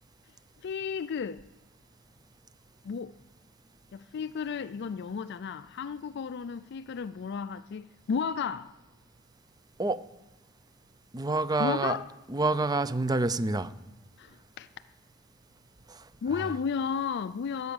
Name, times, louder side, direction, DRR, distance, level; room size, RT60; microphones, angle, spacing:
voice 1, 0.6-1.4 2.8-3.1 3.9-8.8 11.6-12.1 14.2-14.7 16.2-17.7, left 6 dB, 55° left, 0.4 m, -33 dB
voice 2, 11.1-12.0 12.3-13.7 15.9-16.0, right 3 dB, 20° right, 0.5 m, -27 dB
16.0 x 8.1 x 7.0 m
head